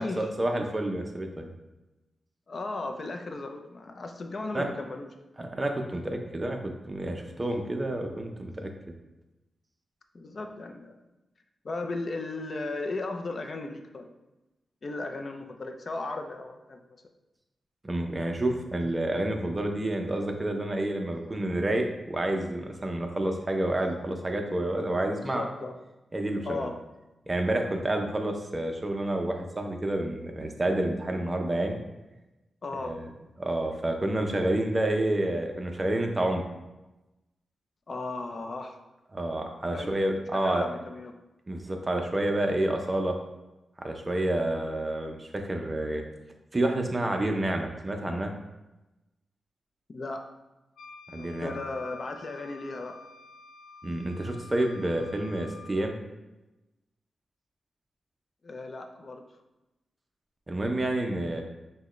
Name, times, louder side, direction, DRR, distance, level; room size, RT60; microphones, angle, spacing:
voice 1, 0.0-1.5 4.5-4.7 5.4-8.7 17.8-25.4 26.1-26.7 27.3-31.8 32.8-33.1 33.4-36.4 39.1-40.7 41.5-43.1 43.8-46.0 46.5-48.3 51.1-51.5 53.8-56.0 60.5-61.4, right 1 dB, 20° right, 3 dB, 0.5 m, -29 dB
voice 2, 2.5-5.1 10.1-11.0 11.6-14.1 14.8-16.8 25.2-25.7 26.4-26.8 32.6-32.9 37.9-38.8 39.7-39.9 40.3-41.1 49.9-50.3 51.1-53.0 58.4-59.2, left 3 dB, 45° left, 5 dB, 0.4 m, -36 dB
Wind instrument woodwind instrument, 50.8-55.9, left 5 dB, 85° left, 0.7 m, -48 dB
6.0 x 2.1 x 3.1 m, 1.0 s
wide cardioid pair, 115°, 0 cm